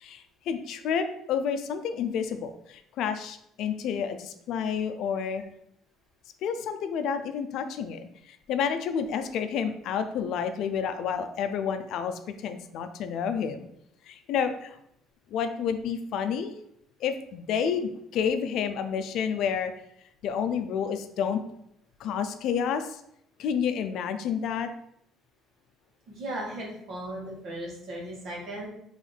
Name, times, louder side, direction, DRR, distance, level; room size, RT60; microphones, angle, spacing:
voice 1, 0.0-5.4 6.4-13.7 14.1-14.8 15.3-16.5 17.0-19.7 20.2-21.4 22.0-23.0 23.4-24.7, left 7 dB, 70° left, 9 dB, 0.4 m, -30 dB
voice 2, 26.1-28.7, right 1 dB, 65° right, -2 dB, 1.5 m, -37 dB
3.8 x 3.1 x 3.3 m, 0.74 s
cardioid pair, 105°, 0 cm